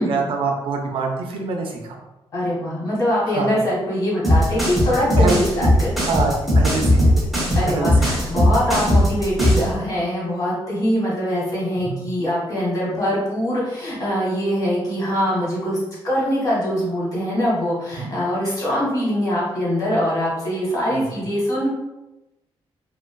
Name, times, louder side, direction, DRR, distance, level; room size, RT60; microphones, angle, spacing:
voice 1, 0.0-2.0 3.2-3.5 5.2-5.4 6.0-7.3 7.7-8.1 8.7-8.9 11.8-12.0 17.9-18.1 20.9-21.3, right 4 dB, 60° right, 2 dB, 0.5 m, -26 dB
voice 2, 2.3-5.9 7.5-15.8 16.0-21.7, equal, 35° left, -6 dB, 1.1 m, -23 dB
sound 1, 4.2-9.7, left 1 dB, ahead, 0.6 m, -18 dB
2.8 x 2.4 x 2.2 m, 0.99 s
wide cardioid pair, 180°, 10 cm